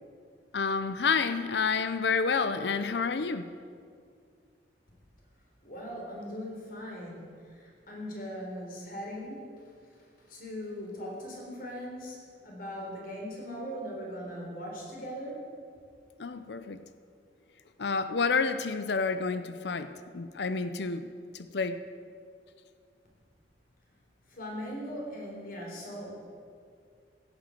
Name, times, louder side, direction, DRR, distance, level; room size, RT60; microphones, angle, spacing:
voice 1, 0.5-3.5 16.2-16.8 17.8-21.1 21.3-21.8, left 5 dB, 70° left, 11 dB, 0.6 m, -29 dB
voice 2, 5.6-9.5 9.9-15.5 24.3-26.3, equal, 50° left, -2 dB, 4.0 m, -40 dB
16.0 x 8.2 x 7.8 m, 2.2 s
head